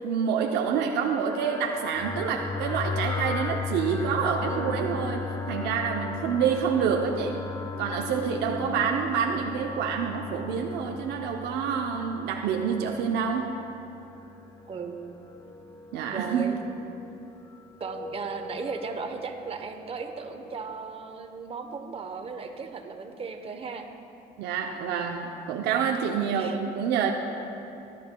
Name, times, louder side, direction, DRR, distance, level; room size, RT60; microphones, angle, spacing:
voice 1, 0.0-7.4 7.8-13.5 15.9-16.6 24.4-27.1, right 7 dB, 85° right, 2 dB, 0.6 m, -27 dB
sound 1, 1.1-20.8, left 4 dB, 20° left, 0.6 m, -37 dB
voice 2, 4.5-4.9 8.5-8.8 14.7-15.0 16.1-16.6 17.8-23.9 26.3-26.6, right 5 dB, 35° right, 5 dB, 0.9 m, -36 dB
16.0 x 11.0 x 2.2 m, 2.9 s
cardioid pair, 110°, 17 cm